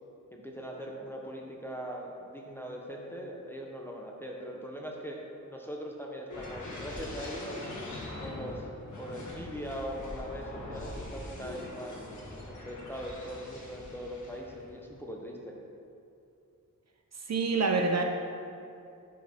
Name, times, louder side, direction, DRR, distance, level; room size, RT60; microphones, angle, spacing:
voice 1, 0.3-7.6 8.0-8.7 9.0-12.0 12.5-15.6, equal, 5° left, -1 dB, 0.7 m, -41 dB
sound 1, 6.3-14.8 15.1-15.4, left 2 dB, 65° left, 1.6 m, -42 dB
voice 2, 17.2-18.0, right 4 dB, 50° right, 3 dB, 0.6 m, -27 dB
6.6 x 4.2 x 5.0 m, 2.6 s
wide cardioid pair, 105°, 33 cm